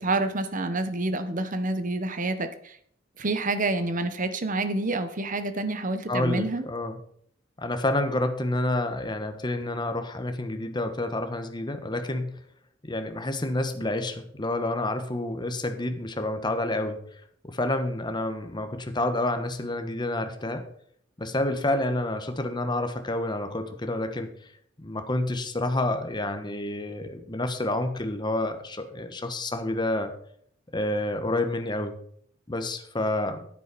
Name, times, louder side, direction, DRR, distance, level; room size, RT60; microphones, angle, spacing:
voice 1, 0.0-2.8 3.2-6.6, right 2 dB, 45° right, 10 dB, 1.0 m, -28 dB
voice 2, 6.1-7.0 7.6-12.4 12.8-17.0 17.4-20.7 21.2-24.3 24.8-30.1 30.7-31.9 32.5-33.5, left 1 dB, 25° left, 7 dB, 1.2 m, -29 dB
10.0 x 9.7 x 4.2 m, 0.64 s
head